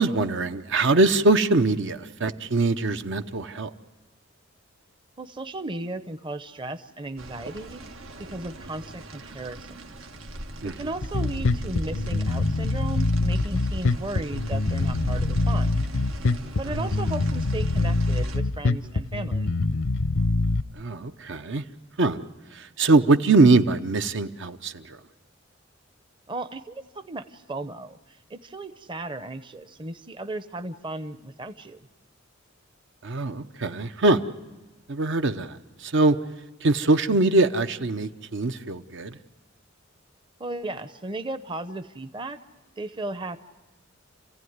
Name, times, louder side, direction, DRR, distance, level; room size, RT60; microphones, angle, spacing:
voice 1, 0.0-3.7 10.6-10.7 16.7-16.9 20.8-21.6 22.0-22.2 22.8-24.8 33.0-34.2 34.9-35.5 35.8-36.1 36.6-39.1, right 3 dB, 65° right, 9 dB, 0.8 m, -22 dB
voice 2, 5.2-7.8 8.2-10.1 10.6-15.8 16.6-19.5 26.3-31.8 40.4-42.4 42.8-43.4, right 2 dB, 25° right, 10 dB, 0.7 m, -35 dB
sound 1, 7.2-18.4, equal, 85° right, 1.6 m, -37 dB
Bass guitar, 11.0-20.6, left 2 dB, 75° left, 0.7 m, -24 dB
28.5 x 15.5 x 9.4 m, 1.1 s
head